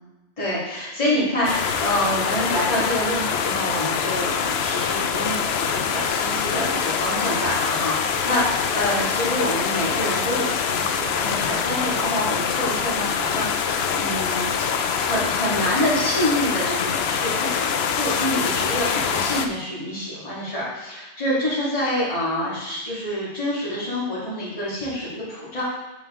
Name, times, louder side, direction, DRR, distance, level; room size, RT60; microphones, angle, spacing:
voice 1, 0.4-25.6, equal, 30° left, -9 dB, 2.2 m, -27 dB
sound 1, 1.4-19.5, left 6 dB, 70° left, 0.8 m, -24 dB
7.3 x 6.7 x 3.7 m, 1.1 s
omnidirectional pair, 1.2 m